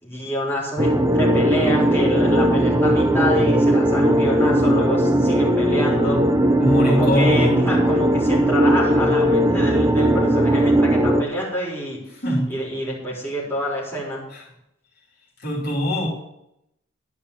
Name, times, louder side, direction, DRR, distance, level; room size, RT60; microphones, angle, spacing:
voice 1, 0.0-6.2 6.9-12.0 12.5-14.2, equal, 10° left, -6 dB, 3.9 m, -27 dB
sound 1, 0.8-11.2, right 1 dB, 15° right, 0.6 m, -18 dB
voice 2, 6.6-7.6 12.2-12.5 14.3-14.4 15.4-16.1, equal, 55° left, -5 dB, 3.1 m, -21 dB
11.0 x 5.5 x 8.4 m, 0.82 s
head